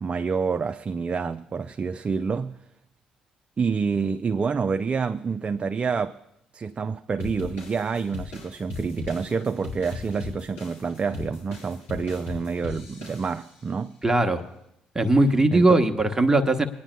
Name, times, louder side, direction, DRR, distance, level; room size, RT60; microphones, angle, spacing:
voice 1, 0.0-2.6 3.6-6.2 6.5-13.9 15.5-15.8, right 5 dB, 35° right, 0.4 m, -28 dB
sound 1, 7.2-13.7, left 3 dB, 70° left, 4.1 m, -38 dB
voice 2, 14.0-14.4 14.9-16.7, right 2 dB, 15° right, 1.0 m, -19 dB
26.0 x 9.9 x 2.2 m
hypercardioid pair, 50°, 3 cm